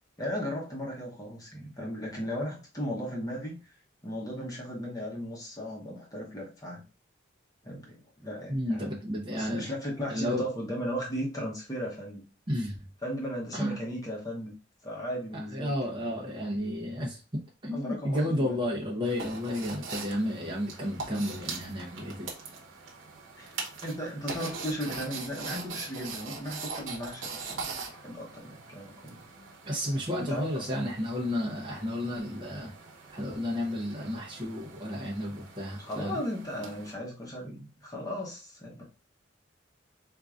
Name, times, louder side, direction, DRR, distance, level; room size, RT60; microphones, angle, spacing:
voice 1, 0.2-3.7 4.0-6.8 7.6-8.9 9.3-12.2 13.0-14.5 14.8-16.2 17.7-18.6 23.4-23.6 23.8-29.2 30.2-30.7 35.8-38.8, equal, 20° left, -2 dB, 1.0 m, -36 dB
voice 2, 8.5-9.6 10.1-10.4 12.5-12.8 13.5-13.8 15.3-17.2 17.6-22.3 29.6-32.7 33.1-36.2, left 1 dB, 25° right, -3 dB, 0.8 m, -32 dB
sound 1, 19.0-36.9, right 4 dB, 80° right, 0.9 m, -42 dB
4.6 x 2.6 x 2.4 m, 0.33 s
head